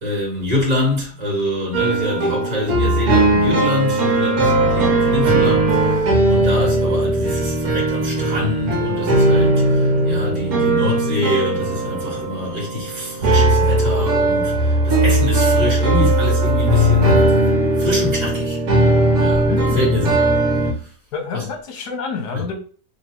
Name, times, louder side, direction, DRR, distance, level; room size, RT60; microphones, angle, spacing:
voice 1, 0.0-17.2 17.8-18.6 19.2-19.5 19.7-20.2 20.6-20.7 21.3-21.4 22.3-22.4, left 2 dB, 30° right, 1.5 m, -25 dB
sound 1, 1.7-20.7, right 1 dB, 65° right, 1.4 m, -18 dB
voice 2, 19.5-20.1 21.1-22.5, left 5 dB, 80° left, 1.4 m, -28 dB
3.2 x 2.9 x 4.4 m
omnidirectional pair, 1.7 m